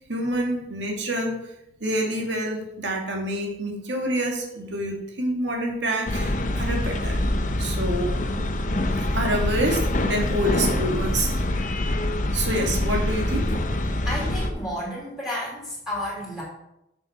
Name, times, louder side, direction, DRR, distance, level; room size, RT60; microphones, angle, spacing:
voice 1, 0.1-1.4 1.8-7.2 7.6-8.1 9.0-11.4 12.3-13.5, right 1 dB, 75° right, 1 dB, 2.2 m, -27 dB
sound 1, 6.1-14.5, left 1 dB, 40° left, 0.7 m, -25 dB
voice 2, 14.0-16.4, left 1 dB, 5° right, -7 dB, 3.0 m, -32 dB
7.2 x 6.5 x 5.7 m, 0.85 s
head